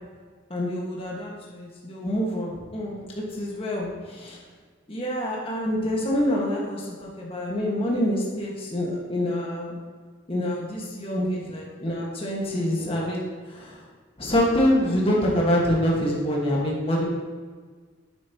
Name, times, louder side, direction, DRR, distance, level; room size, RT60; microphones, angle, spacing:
voice 1, 0.5-3.0 3.3-4.4 4.9-9.7 10.3-13.8 14.2-17.0, equal, 30° left, -3 dB, 1.7 m, -26 dB
8.9 x 8.4 x 3.0 m, 1.5 s
head